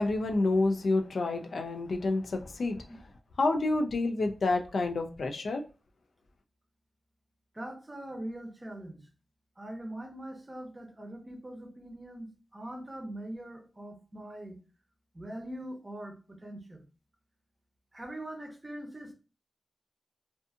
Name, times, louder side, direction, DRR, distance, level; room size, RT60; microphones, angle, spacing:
voice 1, 0.0-2.8 3.4-5.6, left 2 dB, 75° left, 0.3 m, -28 dB
voice 2, 7.5-9.1 9.6-14.6 15.1-16.8 17.9-19.1, right 1 dB, 25° right, 0.6 m, -42 dB
2.5 x 2.5 x 2.4 m
cardioid pair, 70°, 0 cm